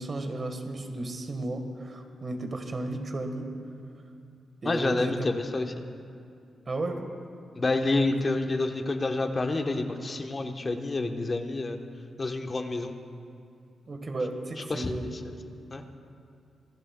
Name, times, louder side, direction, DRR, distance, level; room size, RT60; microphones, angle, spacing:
voice 1, 0.0-3.5 4.6-5.3 6.7-7.1 13.9-15.1, right 2 dB, 45° right, 5 dB, 1.5 m, -33 dB
voice 2, 4.6-5.7 7.6-11.8 12.2-12.9 14.6-15.1 15.7-15.8, left 2 dB, 40° left, 5 dB, 1.1 m, -28 dB
25.5 x 11.5 x 2.3 m, 2.5 s
supercardioid pair, 40°, 0 cm